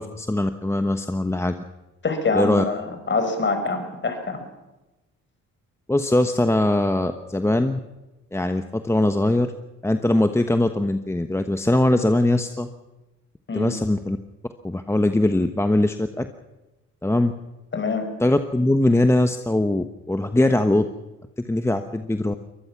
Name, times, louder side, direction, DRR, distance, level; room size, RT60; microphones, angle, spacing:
voice 1, 0.0-1.5 2.3-2.6 5.9-7.8 8.3-9.5 9.8-12.7 13.5-14.2 14.6-16.3 17.0-17.3 18.2-20.9 21.5-22.3, left 1 dB, 10° left, 8 dB, 1.1 m, -21 dB
voice 2, 2.0-4.4 13.5-13.7 17.7-18.1, left 3 dB, 40° left, 6 dB, 5.3 m, -25 dB
23.5 x 19.5 x 5.9 m, 1.1 s
cardioid pair, 90°, 30 cm